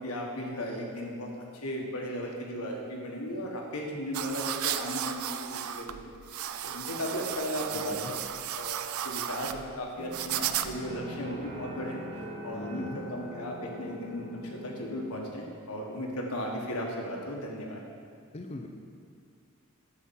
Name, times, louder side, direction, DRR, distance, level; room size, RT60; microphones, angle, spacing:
voice 1, 0.0-6.1 6.6-7.9 8.6-8.8 9.0-12.0 12.4-17.8, equal, 85° left, 0 dB, 1.5 m, -36 dB
sound 1, 4.1-11.0, right 10 dB, 70° right, 0.4 m, -34 dB
voice 2, 7.7-8.1 12.5-13.0 18.3-18.7, left 2 dB, 30° left, 2 dB, 0.5 m, -41 dB
sound 2, 10.0-15.2, equal, 50° right, 1.7 m, -42 dB
9.6 x 4.3 x 7.5 m, 2.2 s
head